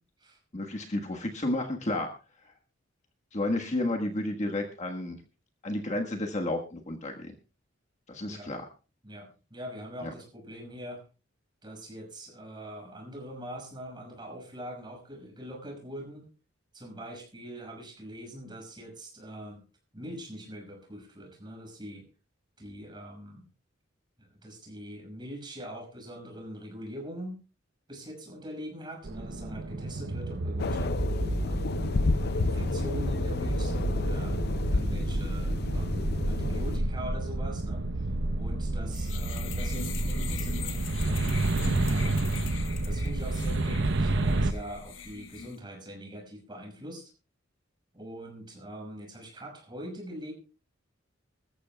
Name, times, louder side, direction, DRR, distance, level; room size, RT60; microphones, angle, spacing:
voice 1, 0.5-2.1 3.3-5.2 5.6-7.3 8.1-8.7 10.0-10.1, left 1 dB, 40° left, 2 dB, 1.5 m, -31 dB
voice 2, 9.0-11.0 11.6-16.3 16.7-19.6 19.9-22.1 22.6-23.5 24.2-27.4 27.9-30.9 31.4-31.8 32.3-34.4 34.6-41.3 41.9-42.4 42.8-47.1 47.9-50.3, equal, 25° right, 2 dB, 5.8 m, -43 dB
sound 1, 29.0-44.5, right 2 dB, 65° right, 0.8 m, -30 dB
sound 2, 30.6-36.8, left 3 dB, 55° left, 0.6 m, -30 dB
sound 3, 38.9-45.6, left 4 dB, 70° left, 1.3 m, -40 dB
25.0 x 14.0 x 2.3 m, 0.33 s
head